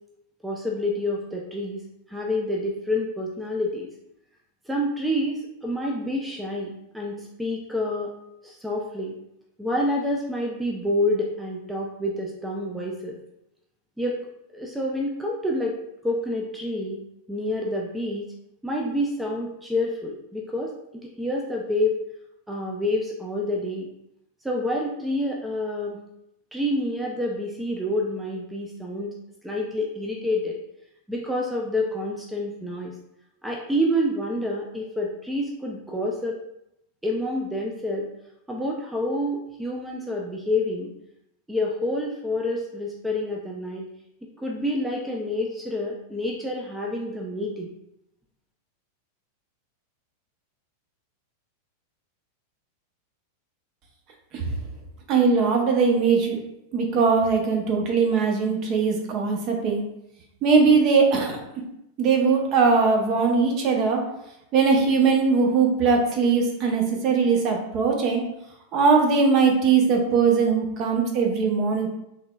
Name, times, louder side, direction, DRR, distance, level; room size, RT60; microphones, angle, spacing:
voice 1, 0.4-1.8 2.1-3.9 4.7-8.1 8.4-9.1 9.6-13.2 14.0-14.2 14.5-17.0 17.3-18.3 18.6-20.7 21.0-22.0 22.5-23.9 24.4-26.0 26.5-29.1 29.4-30.5 31.1-32.9 33.4-36.4 37.0-38.1 38.5-40.9 41.5-43.8 44.4-47.7, left 1 dB, 5° right, -1 dB, 0.4 m, -28 dB
voice 2, 55.1-56.4 56.7-59.8 60.4-61.4 62.0-64.0 64.5-68.2 68.7-71.9, right 5 dB, 35° right, 1 dB, 0.7 m, -20 dB
3.7 x 2.9 x 2.3 m, 0.83 s
figure-of-eight pair, 90°, 0 cm